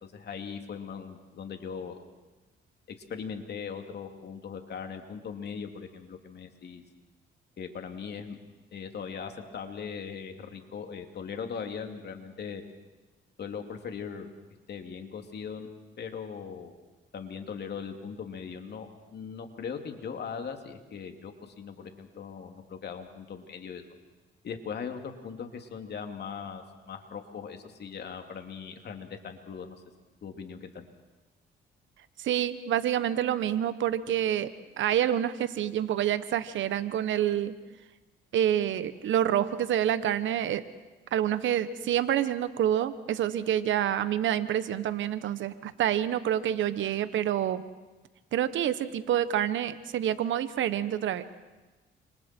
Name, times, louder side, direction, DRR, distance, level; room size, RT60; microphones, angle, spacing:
voice 1, 0.0-2.0 3.1-6.8 7.6-8.4 8.7-12.6 13.4-14.3 14.7-15.7 16.0-16.7 17.1-23.8 24.4-29.8 30.2-30.8, left 6 dB, 55° left, 5 dB, 2.8 m, -39 dB
voice 2, 32.2-34.5 34.8-37.6 38.3-40.6 41.1-47.6 48.3-51.2, right 10 dB, 75° right, 13 dB, 1.2 m, -27 dB
30.0 x 27.0 x 4.5 m, 1.2 s
cardioid pair, 90°, 20 cm